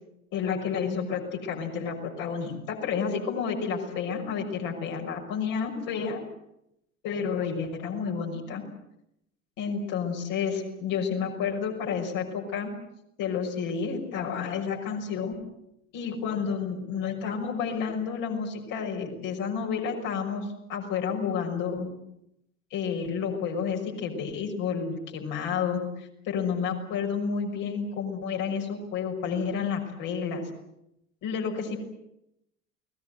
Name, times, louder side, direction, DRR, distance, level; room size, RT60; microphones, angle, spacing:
voice 1, 0.3-6.2 7.0-8.6 9.6-12.7 13.2-15.4 15.9-21.9 22.7-30.4 31.2-31.8, left 6 dB, 50° left, 1 dB, 6.0 m, -30 dB
29.5 x 20.0 x 8.0 m, 0.82 s
figure-of-eight pair, 65°, 40 cm